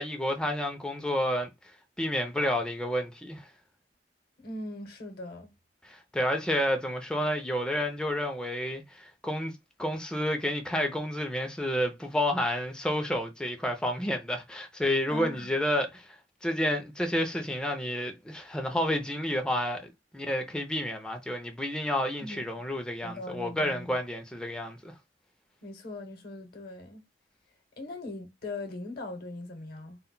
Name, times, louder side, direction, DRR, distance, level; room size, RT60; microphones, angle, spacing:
voice 1, 0.0-1.5 2.0-3.5 5.8-24.9, left 1 dB, 5° left, 0.4 m, -30 dB
voice 2, 4.4-5.5 15.1-15.5 22.2-22.7 23.0-24.0 25.6-27.0 27.8-30.0, left 2 dB, 60° left, 0.8 m, -40 dB
2.1 x 2.0 x 3.7 m
head